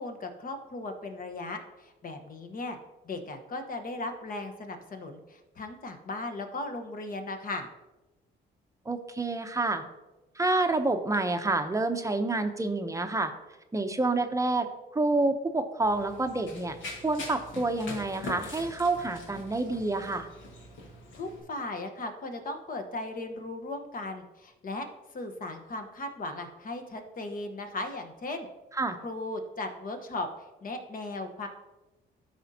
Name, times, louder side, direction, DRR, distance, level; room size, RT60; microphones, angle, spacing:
voice 1, 0.0-2.8 3.0-7.7 21.1-28.5 29.0-31.5, left 2 dB, 45° left, 6 dB, 1.1 m, -37 dB
voice 2, 8.9-9.8 10.4-13.3 13.7-14.7 14.9-16.8 17.0-20.3 28.8-29.0, right 2 dB, 15° right, 6 dB, 0.7 m, -28 dB
Run, 15.8-21.4, left 2 dB, 75° left, 1.7 m, -43 dB
13.0 x 5.0 x 2.8 m, 1.1 s
cardioid pair, 90°, 20 cm